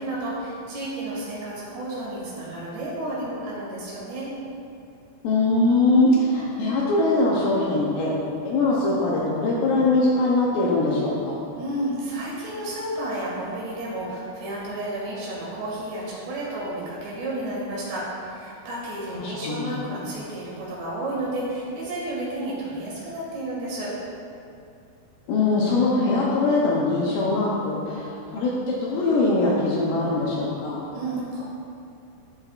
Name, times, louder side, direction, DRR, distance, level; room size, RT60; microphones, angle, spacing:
voice 1, 0.0-4.3 11.5-23.9 30.9-31.4, right 1 dB, 90° right, -7 dB, 4.2 m, -31 dB
voice 2, 5.2-8.1 8.4-11.3 19.1-19.7 25.3-30.8, left 2 dB, 80° left, -5 dB, 2.0 m, -22 dB
12.5 x 5.2 x 2.4 m, 2.5 s
omnidirectional pair, 4.8 m